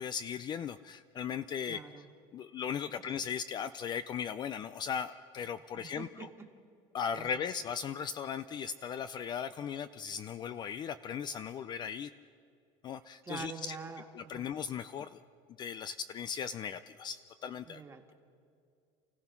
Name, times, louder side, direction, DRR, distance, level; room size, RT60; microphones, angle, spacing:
voice 1, 0.0-1.8 2.3-6.3 6.9-12.1 12.8-13.8 14.1-15.2 15.6-17.8, left 7 dB, 30° left, 13 dB, 0.4 m, -37 dB
voice 2, 1.7-2.1 3.0-3.1 5.8-6.3 7.1-7.4 13.2-14.5 17.6-18.1, right 5 dB, 20° right, 4 dB, 1.7 m, -45 dB
28.5 x 15.5 x 5.9 m, 2.3 s
cardioid pair, 145°, 14 cm